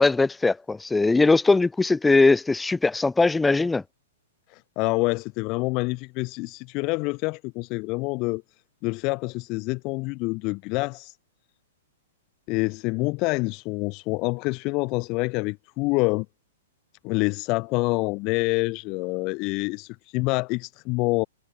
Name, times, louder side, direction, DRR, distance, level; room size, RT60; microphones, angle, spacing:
voice 1, 0.0-3.8, left 3 dB, 5° left, 4.1 m, -20 dB
voice 2, 4.8-8.4 8.8-11.1 12.5-16.3 17.0-21.2, left 26 dB, 35° left, 2.8 m, -26 dB
hypercardioid pair, 135°, 0 cm